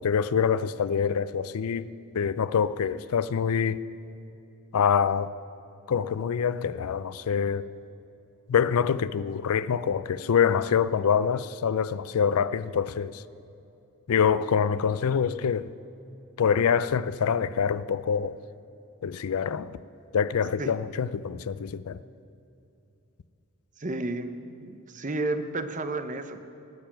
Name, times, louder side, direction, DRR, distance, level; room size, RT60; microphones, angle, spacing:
voice 1, 0.0-3.8 4.7-5.3 5.9-7.7 8.5-13.2 14.1-15.7 16.4-18.4 19.0-19.8 20.1-22.0, left 7 dB, 75° left, 0.4 m, -25 dB
voice 2, 23.8-24.3 24.6-26.4, right 2 dB, 35° right, 0.8 m, -31 dB
18.5 x 6.8 x 8.9 m
head